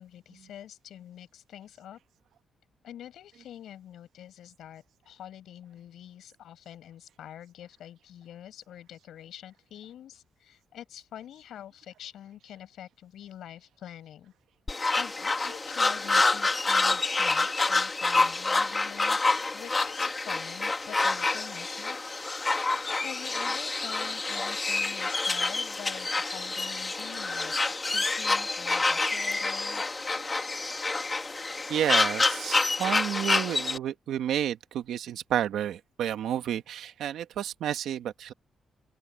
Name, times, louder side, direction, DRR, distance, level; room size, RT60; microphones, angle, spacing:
voice 1, 0.0-2.0 2.8-14.3 14.9-22.0 23.0-29.8, left 11 dB, 75° left, 7.1 m, -46 dB
sound 1, 14.7-33.8, left 3 dB, 20° left, 2.3 m, -27 dB
voice 2, 31.7-38.3, right 10 dB, 80° right, 1.7 m, -31 dB
open air
cardioid pair, 135°, 0 cm